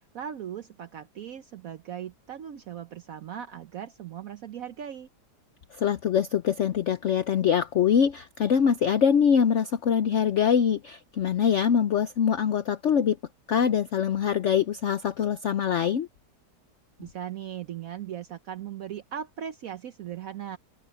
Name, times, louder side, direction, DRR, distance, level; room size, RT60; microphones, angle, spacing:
voice 1, 0.1-5.1 17.0-20.6, right 9 dB, 60° right, 1.1 m, -38 dB
voice 2, 5.8-13.2 13.5-16.1, left 8 dB, 60° left, 0.9 m, -23 dB
omnidirectional pair, 1.8 m